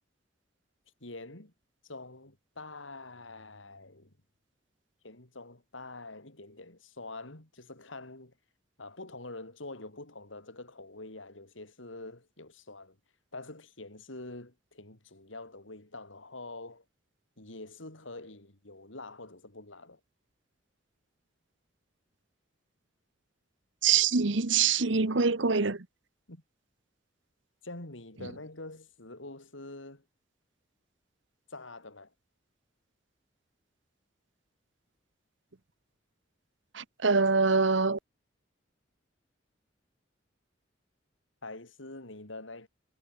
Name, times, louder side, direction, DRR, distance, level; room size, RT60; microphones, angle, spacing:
voice 1, 1.0-1.5 1.8-4.1 5.0-8.3 8.8-13.0 13.3-16.8 17.4-20.0 26.3-26.4 27.6-30.0 31.5-32.1 41.4-42.7, left 2 dB, 85° left, 4.2 m, -45 dB
voice 2, 23.8-25.8 36.7-38.0, right 5 dB, 75° right, 1.2 m, -24 dB
head